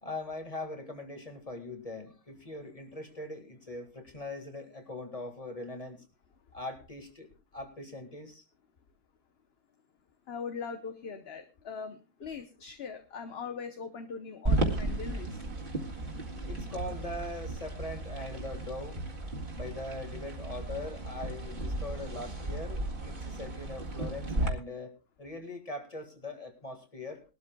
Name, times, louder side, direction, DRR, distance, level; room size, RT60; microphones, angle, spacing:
voice 1, 0.0-6.0 6.5-8.4 16.4-19.0 19.5-24.9 25.2-27.2, left 2 dB, 25° left, 5 dB, 2.0 m, -41 dB
voice 2, 10.3-15.4, left 5 dB, 50° left, 7 dB, 1.1 m, -41 dB
sound 1, 14.4-24.5, right 2 dB, 35° right, 2.2 m, -34 dB
21.0 x 13.0 x 2.3 m, 0.31 s
omnidirectional pair, 1.5 m